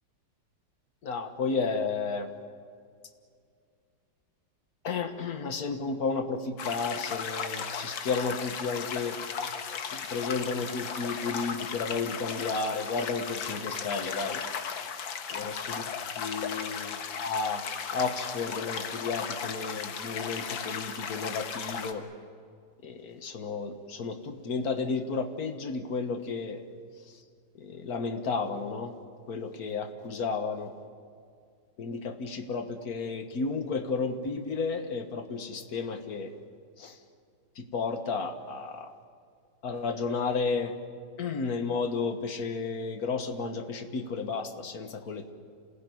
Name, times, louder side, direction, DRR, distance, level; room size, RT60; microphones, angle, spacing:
voice 1, 1.0-2.3 4.8-9.2 9.8-14.4 15.3-15.8 16.2-17.6 17.9-22.0 22.8-26.6 27.6-29.0 29.3-30.7 31.8-36.3 36.8-37.0 37.6-38.9 39.6-40.7 41.2-45.3, left 4 dB, 50° left, 8 dB, 1.9 m, -32 dB
sound 1, 6.6-21.9, left 7 dB, 80° left, 2.1 m, -36 dB
27.5 x 16.5 x 9.8 m, 2.3 s
omnidirectional pair, 2.1 m